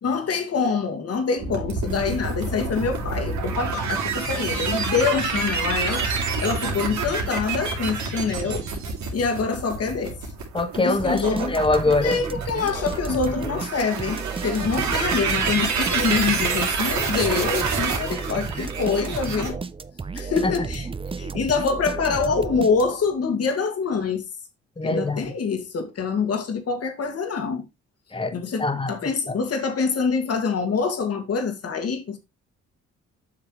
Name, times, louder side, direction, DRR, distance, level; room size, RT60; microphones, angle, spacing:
voice 1, 0.0-6.1 6.4-8.7 9.1-10.2 10.8-11.5 12.0-19.6 20.1-20.9 21.2-24.3 24.8-27.7 28.3-32.2, left 5 dB, 55° left, 2.0 m, -25 dB
sound 1, 1.4-19.5, right 4 dB, 70° right, 2.8 m, -28 dB
voice 2, 10.5-12.2 20.4-20.5 24.8-25.2 28.1-28.9 29.3-29.4, left 2 dB, 15° left, 1.4 m, -23 dB
sound 2, 11.0-23.2, right 4 dB, 20° right, 0.5 m, -33 dB
7.7 x 5.9 x 3.1 m
cardioid pair, 90°, 30 cm